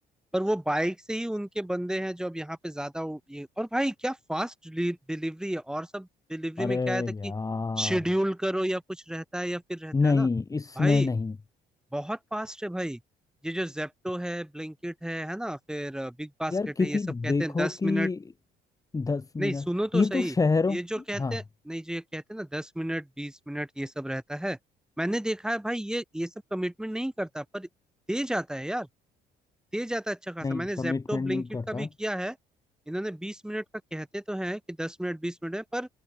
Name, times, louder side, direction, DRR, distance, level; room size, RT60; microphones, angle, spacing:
voice 1, 0.3-7.3 7.8-10.3 10.8-11.1 11.9-13.0 13.4-18.1 19.4-20.3 20.7-24.6 25.0-27.7 28.1-28.9 29.7-32.4 32.9-33.6 33.9-35.9, right 1 dB, 5° right, 3.6 m, -32 dB
voice 2, 6.6-8.0 9.9-11.4 16.5-18.2 18.9-19.7 19.9-20.8 21.1-21.4 30.4-31.9, left 4 dB, 20° left, 2.2 m, -27 dB
cardioid pair, 110°, 17 cm